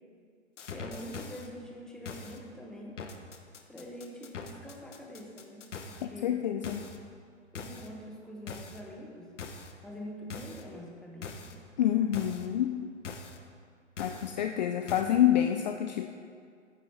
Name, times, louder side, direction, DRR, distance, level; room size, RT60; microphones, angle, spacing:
sound 1, 0.6-1.5 2.1-2.4 3.0-6.1 6.6-7.0 7.6-7.9 8.5-8.8 9.4-9.7 10.3-10.6 11.2-11.5 12.1-12.5 13.0-13.4 14.0-14.3 14.9-15.0, left 5 dB, 70° left, 1.3 m, -42 dB
voice 1, 0.6-3.0 3.7-6.4 7.5-9.3 9.8-11.6 14.1-14.3, equal, ahead, -1 dB, 1.0 m, -45 dB
voice 2, 6.0-6.9 11.8-12.8 14.0-16.1, left 11 dB, 35° left, 5 dB, 0.5 m, -27 dB
14.5 x 9.2 x 3.5 m, 2.2 s
hypercardioid pair, 135°, 37 cm